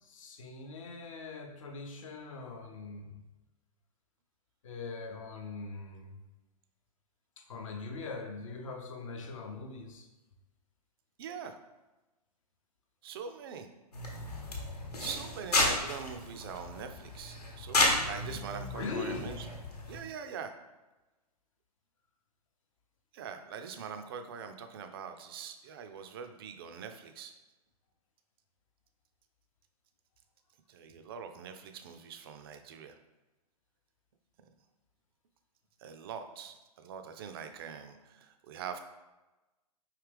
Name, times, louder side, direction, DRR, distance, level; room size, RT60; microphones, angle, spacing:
voice 1, 0.0-3.2 4.6-6.2 7.4-10.1 18.7-19.4, left 4 dB, 55° left, 3 dB, 0.7 m, -41 dB
voice 2, 11.2-11.6 13.0-13.7 15.0-19.5 19.9-20.5 23.1-27.3 30.7-33.0 35.8-38.8, right 7 dB, 35° right, 7 dB, 0.4 m, -43 dB
sound 1, 13.9-20.0, left 2 dB, 75° left, 1.0 m, -33 dB
4.9 x 2.8 x 3.3 m, 1.1 s
figure-of-eight pair, 110°, 20 cm